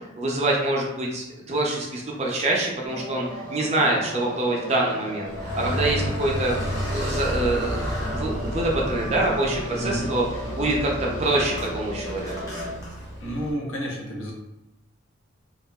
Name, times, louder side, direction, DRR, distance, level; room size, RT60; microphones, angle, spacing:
voice 1, 0.0-6.6 6.9-10.2 10.6-12.3, right 2 dB, 30° right, -2 dB, 0.4 m, -25 dB
sound 1, 2.9-12.7, left 1 dB, 40° left, 1.4 m, -36 dB
Car, 5.3-13.5, equal, 15° left, 0.5 m, -31 dB
voice 2, 9.8-10.1 13.2-14.3, equal, 70° left, -2 dB, 0.7 m, -30 dB
2.8 x 2.3 x 2.2 m, 0.99 s
head